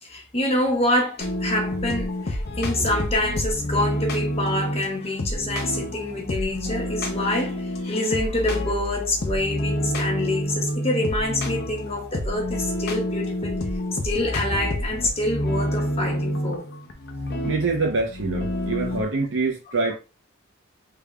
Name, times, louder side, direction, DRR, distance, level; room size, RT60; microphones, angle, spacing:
voice 1, 0.0-13.6 14.0-16.7, left 1 dB, 30° left, 0.9 m, -26 dB
sound 1, 1.2-19.0, left 1 dB, 50° left, 0.6 m, -28 dB
voice 2, 17.4-19.9, right 3 dB, 65° right, 0.7 m, -25 dB
3.5 x 3.4 x 2.3 m
head